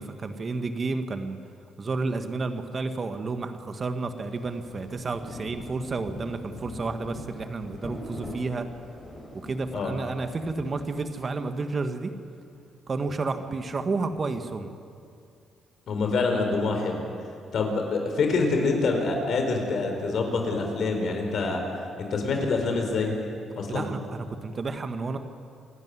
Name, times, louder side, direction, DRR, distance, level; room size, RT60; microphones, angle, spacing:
voice 1, 0.0-1.4 1.8-8.7 9.4-12.1 12.9-14.7 23.7-25.2, right 3 dB, 35° right, 8 dB, 1.5 m, -31 dB
Rain, 4.3-11.5, left 1 dB, 15° left, 5.3 m, -43 dB
voice 2, 15.9-17.0 17.5-21.6 22.0-23.1 23.6-23.9, left 3 dB, 60° left, 3 dB, 4.5 m, -26 dB
27.0 x 12.0 x 9.8 m, 2.5 s
cardioid pair, 90°, 0 cm